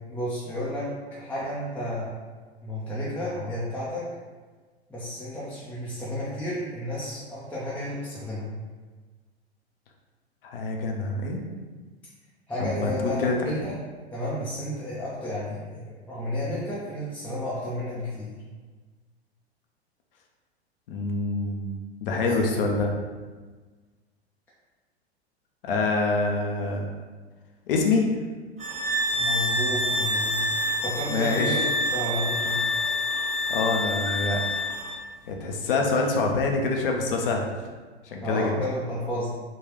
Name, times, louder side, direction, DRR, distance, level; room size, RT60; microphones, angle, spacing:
voice 1, 0.1-2.1 2.6-4.0 4.9-8.5 12.5-13.8 14.1-18.4 22.2-22.6 29.1-30.4 30.8-31.6 31.9-32.6 38.2-39.3, left 1 dB, 5° left, -9 dB, 0.5 m, -32 dB
voice 2, 10.4-11.4 12.6-12.9 13.2-13.6 20.9-21.7 22.0-22.9 25.6-26.9 27.7-28.1 31.1-31.6 33.5-34.4 35.3-37.4 38.0-38.5, left 3 dB, 55° left, 1 dB, 0.6 m, -25 dB
sound 1, 28.6-35.0, left 1 dB, 20° right, 0.8 m, -27 dB
3.8 x 2.4 x 3.0 m, 1.4 s
figure-of-eight pair, 95°, 33 cm